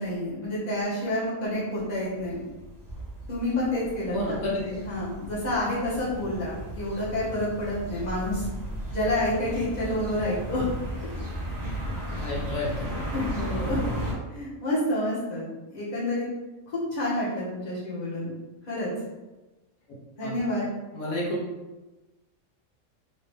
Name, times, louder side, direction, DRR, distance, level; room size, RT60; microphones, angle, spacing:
voice 1, 0.0-2.4 3.3-8.4 8.9-10.7 11.7-12.2 13.1-13.8 14.3-16.3 16.7-18.3 18.7-18.9 20.2-20.7, left 1 dB, 30° left, -8 dB, 1.2 m, -29 dB
sound 1, 2.2-14.1, equal, 25° right, 0.4 m, -35 dB
voice 2, 4.1-4.5 12.2-13.2 13.7-13.8 20.2-20.3 20.9-21.4, left 1 dB, 75° left, -5 dB, 1.2 m, -31 dB
3.1 x 2.9 x 3.2 m, 1.1 s
omnidirectional pair, 1.5 m